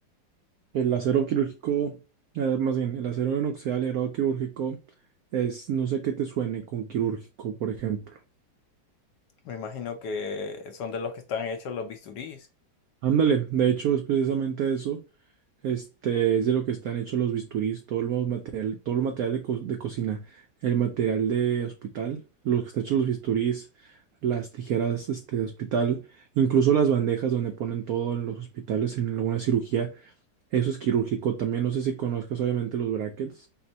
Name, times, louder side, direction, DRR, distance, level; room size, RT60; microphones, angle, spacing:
voice 1, 0.7-2.0 2.3-4.8 5.3-8.0 13.0-15.0 15.6-23.9 24.2-26.0 26.4-30.1 30.5-33.5, right 8 dB, 80° right, 0.8 m, -27 dB
voice 2, 9.5-12.4, left 5 dB, 70° left, 1.1 m, -34 dB
4.4 x 2.1 x 3.9 m
omnidirectional pair, 2.2 m